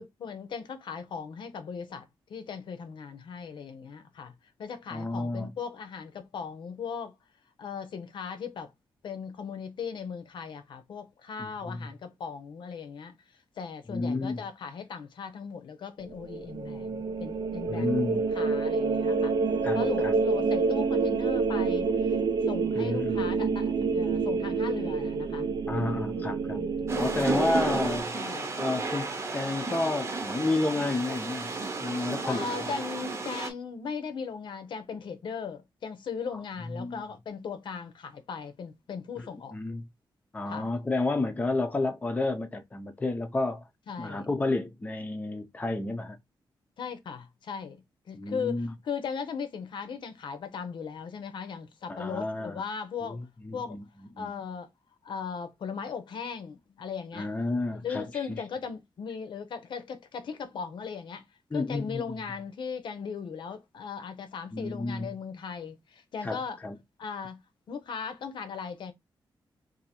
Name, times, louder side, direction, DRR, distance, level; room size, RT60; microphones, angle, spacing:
voice 1, 0.0-4.3 4.6-7.1 7.6-8.7 9.0-13.1 13.6-19.3 19.7-22.2 22.5-25.5 26.6-27.6 28.1-28.5 32.2-39.6 40.5-40.7 43.9-44.3 46.8-53.2 53.5-53.8 54.2-54.7 55.0-57.3 57.8-61.2 61.5-66.6 67.0-67.4 67.7-68.9, left 6 dB, 75° left, 0.7 m, -38 dB
voice 2, 4.9-5.5 11.4-11.9 13.9-14.4 17.7-18.3 19.6-20.1 22.7-23.2 25.7-26.6 27.0-28.2 28.6-31.5 31.8-32.7 36.7-37.0 39.2-39.8 40.3-43.7 44.0-46.2 48.1-48.7 51.9-52.6 53.0-53.8 54.2-54.3 57.1-58.4 61.5-62.1 64.5-65.1 66.2-66.8, left 2 dB, 20° left, 0.6 m, -31 dB
sound 1, 16.1-28.0, right 4 dB, 55° right, 0.5 m, -28 dB
sound 2, 26.9-33.5, right 3 dB, 35° right, 0.9 m, -32 dB
2.7 x 2.6 x 4.2 m
wide cardioid pair, 140°, 8 cm